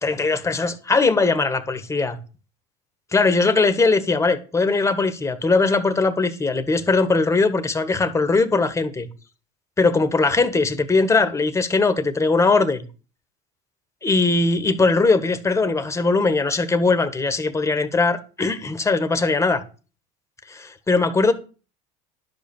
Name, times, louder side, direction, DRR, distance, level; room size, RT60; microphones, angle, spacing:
voice 1, 0.0-2.2 3.1-9.1 9.8-12.8 14.0-19.6 20.5-21.3, left 3 dB, 15° left, 1.5 m, -20 dB
11.5 x 5.2 x 7.1 m
supercardioid pair, 100°, 19 cm